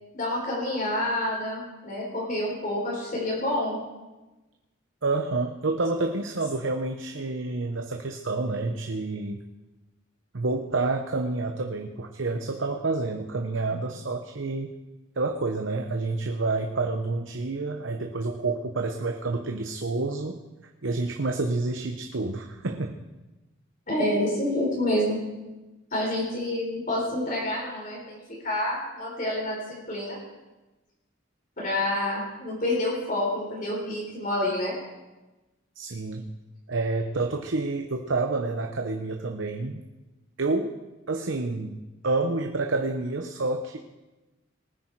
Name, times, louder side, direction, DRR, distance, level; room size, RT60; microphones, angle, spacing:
voice 1, 0.1-3.8 23.9-25.2 25.9-28.2 28.4-30.2 31.6-34.7, left 1 dB, 40° left, -4 dB, 4.0 m, -28 dB
voice 2, 5.0-9.4 10.3-14.8 15.2-20.4 20.8-23.0 35.8-36.3 36.7-39.8 40.4-40.8 41.1-43.8, right 3 dB, 75° right, 4 dB, 0.9 m, -28 dB
19.5 x 9.8 x 4.7 m, 1.1 s
head